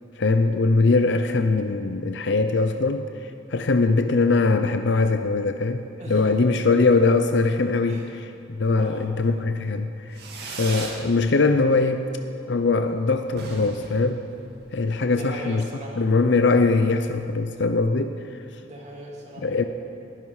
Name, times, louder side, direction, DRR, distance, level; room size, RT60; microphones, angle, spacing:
voice 1, 0.2-12.1 12.5-14.2 14.7-15.6 16.0-18.1 19.4-19.6, left 3 dB, 65° left, 8 dB, 0.6 m, -22 dB
voice 2, 6.0-6.4 7.9-8.0 8.7-9.1 15.1-16.0 18.6-19.5, equal, 35° right, -2 dB, 2.6 m, -39 dB
Fireworks, 10.1-11.0 11.4-12.0 12.2-12.3 12.6-12.7 12.9-13.0 13.3-14.9, right 3 dB, 60° right, 2.1 m, -37 dB
20.0 x 11.0 x 4.8 m, 2.5 s
head